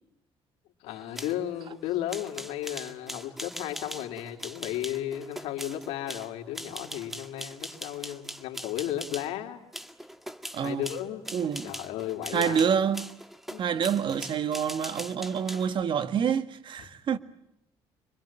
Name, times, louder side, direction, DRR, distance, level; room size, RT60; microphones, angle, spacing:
voice 1, 0.8-9.6 10.6-11.2 11.6-12.7 13.5-13.7, left 12 dB, 85° left, 3.4 m, -34 dB
sound 1, 0.9-9.3 9.7-15.7, equal, ahead, 1.8 m, -41 dB
voice 2, 10.5-10.9 11.3-11.7 12.3-13.1 13.6-17.2, right 7 dB, 50° right, 1.7 m, -27 dB
27.0 x 24.0 x 9.0 m
cardioid pair, 100°, 10 cm